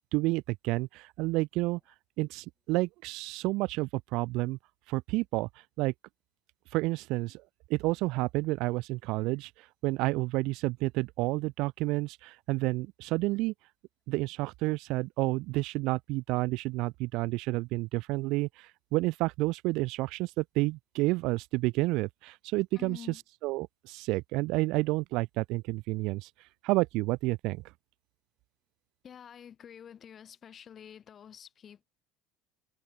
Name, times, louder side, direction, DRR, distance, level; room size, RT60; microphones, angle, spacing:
voice 1, 0.0-1.8 2.2-4.6 4.9-5.5 5.8-5.9 6.7-7.4 7.7-13.5 14.1-23.0 23.4-26.3 26.6-27.6, right 22 dB, 55° right, 0.4 m, -30 dB
voice 2, 22.7-23.2 29.0-31.9, left 8 dB, 25° left, 6.5 m, -48 dB
cardioid pair, 170°, 0 cm